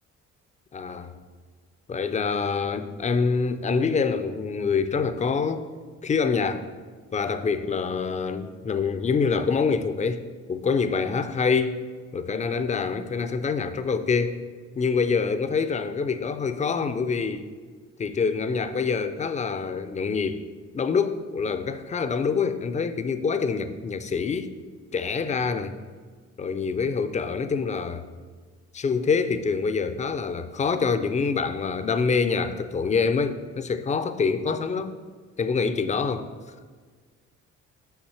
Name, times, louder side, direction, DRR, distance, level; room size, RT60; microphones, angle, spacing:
voice 1, 0.7-1.1 1.9-5.6 6.0-6.6 7.1-10.2 10.5-11.8 12.1-14.4 14.8-17.4 18.0-20.4 20.7-24.5 24.9-25.7 26.4-28.0 28.7-34.9 35.4-36.3, left 5 dB, 25° left, 10 dB, 0.5 m, -25 dB
6.1 x 5.7 x 4.3 m, 1.5 s
cardioid pair, 90°, 30 cm